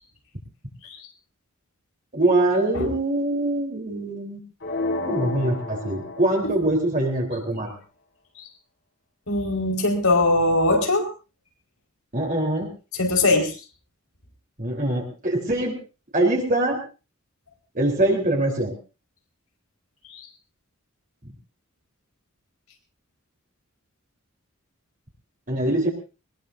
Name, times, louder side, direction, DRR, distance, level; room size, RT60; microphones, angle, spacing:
voice 1, 2.1-4.4 5.0-7.8 12.1-12.7 14.6-15.8 16.1-16.8 17.7-18.7 25.5-25.9, right 1 dB, 40° right, 0 dB, 3.8 m, -23 dB
sound 1, 4.6-6.7, left 2 dB, 55° left, 4.0 m, -30 dB
voice 2, 9.3-11.1 13.0-13.5 20.1-20.2, left 2 dB, 85° left, 2 dB, 4.9 m, -21 dB
22.0 x 20.5 x 2.7 m, 0.32 s
head